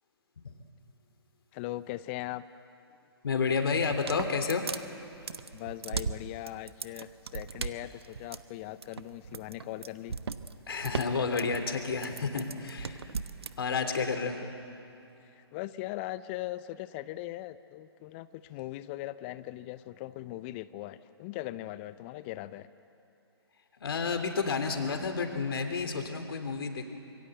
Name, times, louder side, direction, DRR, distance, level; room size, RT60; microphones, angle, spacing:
voice 1, 1.5-2.4 5.5-10.1 14.4-14.5 15.2-22.7, left 16 dB, 25° left, 15 dB, 0.6 m, -40 dB
voice 2, 3.2-4.8 10.7-13.1 13.6-14.4 23.8-26.9, left 5 dB, 65° left, 7 dB, 3.2 m, -30 dB
sound 1, 3.8-13.5, right 5 dB, 70° right, 1.2 m, -38 dB
26.0 x 23.5 x 8.0 m, 2.9 s
figure-of-eight pair, 130°, 14 cm